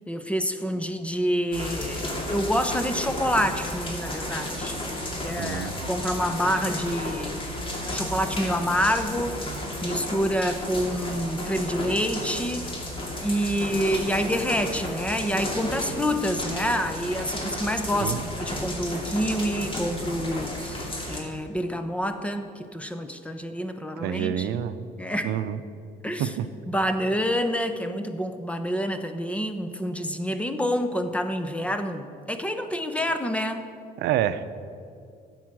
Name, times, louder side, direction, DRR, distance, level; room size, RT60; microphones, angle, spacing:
voice 1, 0.1-4.8 5.2-7.5 7.9-9.4 9.8-12.7 13.2-24.6 25.0-25.3 26.0-26.3 26.7-33.7, equal, 5° left, 8 dB, 0.9 m, -27 dB
sound 1, 1.5-21.2, left 1 dB, 30° left, 2.5 m, -33 dB
voice 2, 5.4-5.9 18.0-18.2 24.0-24.9 25.2-25.6 26.2-26.5 34.0-34.4, right 11 dB, 80° right, 12 dB, 0.6 m, -28 dB
13.0 x 8.0 x 6.2 m, 2.4 s
cardioid pair, 110°, 17 cm